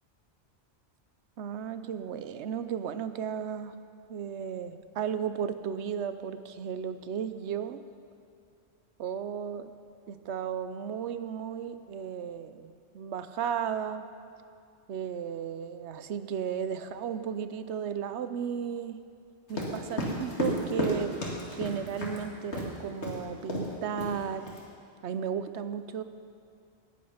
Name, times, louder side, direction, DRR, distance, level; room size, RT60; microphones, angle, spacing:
voice 1, 1.4-3.7 4.1-7.8 9.0-9.7 10.1-14.1 14.9-19.0 19.5-24.5 25.0-26.0, right 8 dB, 80° right, 11 dB, 1.0 m, -34 dB
sound 1, 19.5-22.2 22.5-22.7 23.0-23.2 23.5-23.7 24.0-24.6, left 1 dB, 80° left, 2.4 m, -32 dB
18.5 x 8.5 x 5.8 m, 2.5 s
omnidirectional pair, 1.1 m